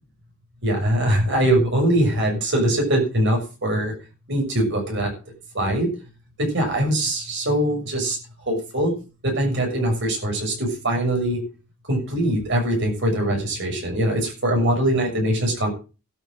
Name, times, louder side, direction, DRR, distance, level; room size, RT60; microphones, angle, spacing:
voice 1, 0.6-3.9 4.3-5.1 5.5-5.9 6.4-8.2 8.4-8.9 9.2-11.4 11.9-15.7, right 1 dB, 55° right, 1 dB, 6.7 m, -22 dB
12.0 x 8.0 x 7.7 m, 0.34 s
head